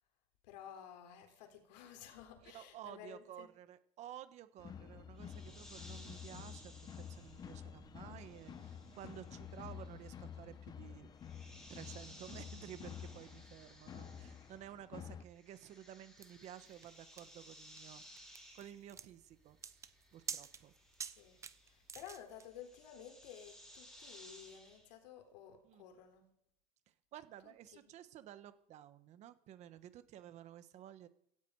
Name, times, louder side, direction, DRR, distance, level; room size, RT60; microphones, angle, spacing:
voice 1, 0.4-3.5 21.2-21.4 21.6-26.3 27.4-27.9, left 9 dB, 85° left, 6 dB, 3.9 m, -54 dB
voice 2, 2.4-11.1 11.7-20.7 25.6-25.8 26.9-31.1, right 11 dB, 35° right, 12 dB, 1.3 m, -53 dB
sound 1, 4.6-15.2, left 8 dB, 20° left, 1.0 m, -50 dB
sound 2, 5.2-14.9 15.1-24.9, equal, 5° left, 8.0 m, -60 dB
sound 3, 16.2-22.5, right 6 dB, 15° right, 0.7 m, -48 dB
17.0 x 14.5 x 4.8 m, 0.70 s
supercardioid pair, 170°, 21 cm